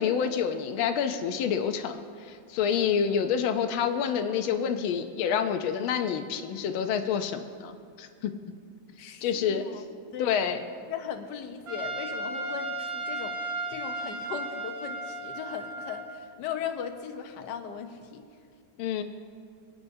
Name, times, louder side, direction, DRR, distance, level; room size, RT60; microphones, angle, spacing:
voice 1, 0.0-8.3 9.2-9.6 10.2-10.6 18.8-19.0, left 7 dB, 85° left, 7 dB, 1.5 m, -28 dB
voice 2, 9.0-9.8 10.1-10.6 10.9-18.2, left 7 dB, 65° left, 5 dB, 1.4 m, -38 dB
Trumpet, 11.7-16.3, right 2 dB, 70° right, 2.1 m, -35 dB
25.0 x 9.0 x 2.7 m, 2.2 s
omnidirectional pair, 2.2 m